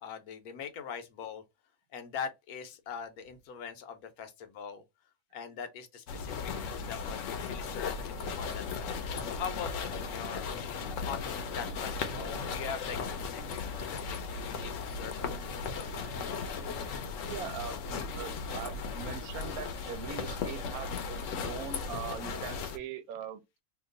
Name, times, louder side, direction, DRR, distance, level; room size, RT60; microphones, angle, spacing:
voice 1, 0.0-1.4 1.9-4.8 5.3-15.4 15.7-15.8, left 7 dB, 85° left, 1.2 m, -42 dB
sound 1, 6.1-22.8, left 5 dB, 70° left, 0.9 m, -36 dB
voice 2, 17.2-23.6, right 8 dB, 85° right, 1.1 m, -42 dB
2.9 x 2.3 x 3.6 m
omnidirectional pair, 1.5 m